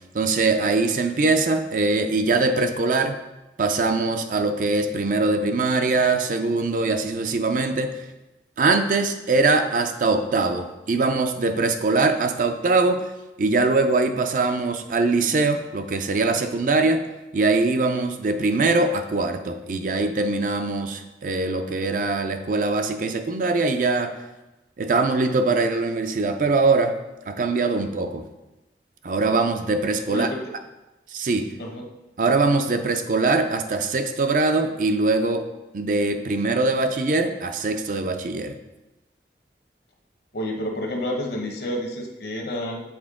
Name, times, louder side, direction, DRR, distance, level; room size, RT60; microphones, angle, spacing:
voice 1, 0.1-3.2 3.6-8.0 8.6-13.1 13.4-17.0 17.3-24.1 24.8-26.9 27.3-28.2 29.0-30.3 31.1-31.5 32.2-35.5 35.7-38.5, right 3 dB, 50° right, 7 dB, 0.4 m, -22 dB
voice 2, 40.3-42.8, left 1 dB, 60° left, 2 dB, 0.9 m, -29 dB
7.1 x 4.4 x 3.6 m, 1.0 s
head